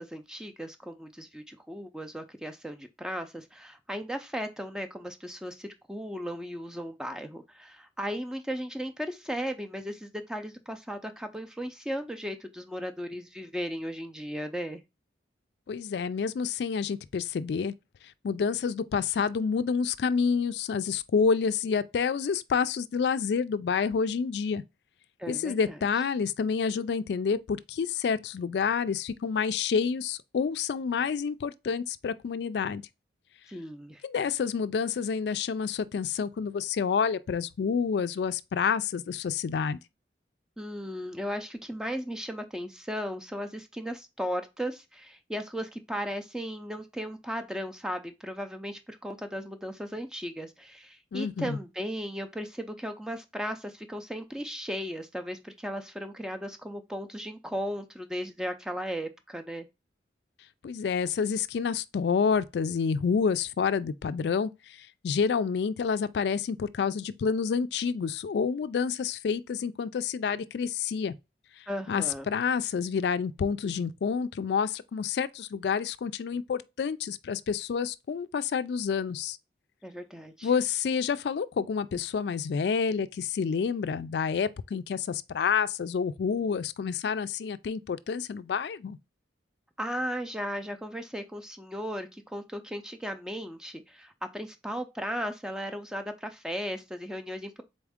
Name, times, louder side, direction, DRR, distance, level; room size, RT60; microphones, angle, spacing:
voice 1, 0.0-14.8 25.2-25.8 33.5-34.0 40.6-59.7 71.7-72.3 79.8-80.5 89.8-97.6, equal, 5° right, 0.4 m, -36 dB
voice 2, 15.7-17.7 18.2-24.6 25.3-32.8 34.0-39.8 51.1-51.6 60.6-71.1 71.9-79.4 80.4-89.0, left 6 dB, 70° left, 0.3 m, -28 dB
4.1 x 3.5 x 3.5 m
head